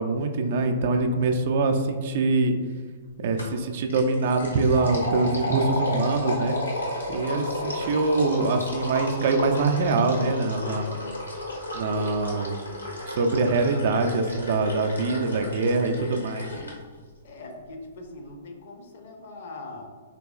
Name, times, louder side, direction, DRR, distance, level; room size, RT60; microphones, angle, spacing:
voice 1, 0.0-2.5 3.2-6.6 7.1-11.0 11.7-12.6 13.1-16.5, right 3 dB, 50° right, 5 dB, 0.3 m, -24 dB
sound 1, 3.4-3.6 3.9-16.7, left 1 dB, 85° left, 0.9 m, -32 dB
voice 2, 17.2-19.9, left 2 dB, 55° left, 4 dB, 0.5 m, -41 dB
3.9 x 3.0 x 2.3 m, 1.5 s
figure-of-eight pair, 115°, 0 cm